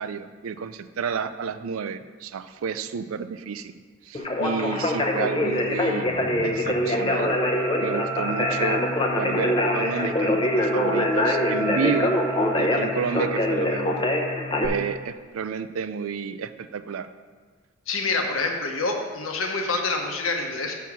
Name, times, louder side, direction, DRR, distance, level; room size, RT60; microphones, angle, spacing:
voice 1, 0.0-3.7 4.1-6.1 6.4-7.3 7.8-8.9 9.2-12.2 12.6-14.0 14.6-17.1, right 6 dB, 85° right, 12 dB, 0.4 m, -30 dB
Conversation, 4.1-14.7, left 1 dB, 25° left, 0.6 m, -24 dB
sound 1, 6.0-14.5, right 4 dB, 5° right, 1.1 m, -36 dB
voice 2, 6.1-6.8 17.9-20.7, left 3 dB, 80° left, 3 dB, 1.0 m, -27 dB
6.2 x 5.7 x 6.1 m, 1.5 s
head